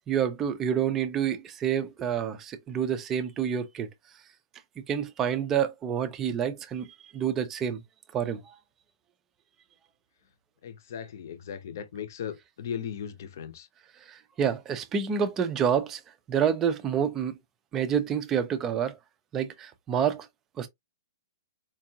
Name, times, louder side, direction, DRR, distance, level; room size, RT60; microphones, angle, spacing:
voice 1, 0.0-3.9 4.8-7.8 8.1-8.4 14.1-16.0 16.3-17.4 17.7-19.0 19.3-20.3 20.6-20.7, right 8 dB, 15° right, 0.4 m, -28 dB
voice 2, 10.6-13.7, left 8 dB, 50° left, 0.7 m, -37 dB
4.5 x 2.4 x 2.8 m
hypercardioid pair, 175°, 2 cm